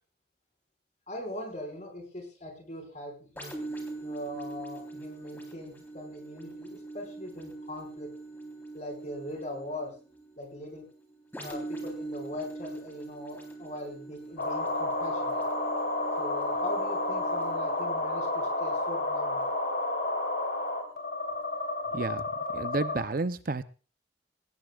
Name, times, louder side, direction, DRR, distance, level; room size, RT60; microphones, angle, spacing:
voice 1, 1.1-3.5 4.0-8.1 8.7-9.9 10.4-10.9 11.4-15.4 16.2-19.5, left 1 dB, 40° left, 2 dB, 5.4 m, -41 dB
sound 1, 3.4-20.9 21.4-21.6, right 2 dB, 10° left, 3.8 m, -43 dB
sound 2, 14.4-23.0, left 2 dB, 60° left, 3.9 m, -31 dB
voice 2, 21.9-22.2 22.5-23.6, right 3 dB, 50° right, 13 dB, 0.6 m, -31 dB
19.0 x 18.0 x 2.4 m, 0.36 s
head